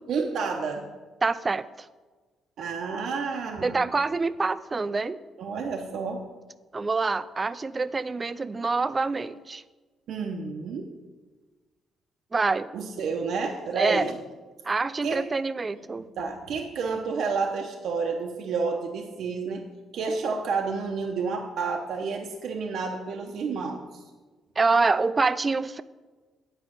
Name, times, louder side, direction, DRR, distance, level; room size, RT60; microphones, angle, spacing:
voice 1, 0.1-0.9 2.6-3.9 5.4-6.2 10.1-10.9 12.7-14.2 15.0-15.2 16.2-19.6 19.9-24.0, right 4 dB, 70° right, 2 dB, 0.8 m, -30 dB
voice 2, 1.2-1.6 3.6-5.2 6.7-9.6 12.3-12.7 13.8-14.1 14.6-16.0 24.6-25.8, right 3 dB, 30° right, 15 dB, 0.4 m, -26 dB
8.9 x 5.1 x 6.2 m, 1.3 s
cardioid pair, 90°, 0 cm